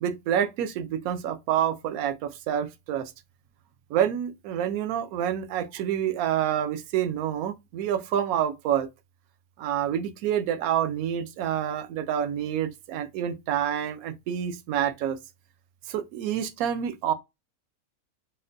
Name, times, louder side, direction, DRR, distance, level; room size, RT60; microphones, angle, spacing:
voice 1, 0.0-3.1 3.9-8.9 9.6-15.2 15.9-17.1, right 10 dB, 70° right, 1.0 m, -28 dB
4.1 x 2.2 x 2.5 m
omnidirectional pair, 1.7 m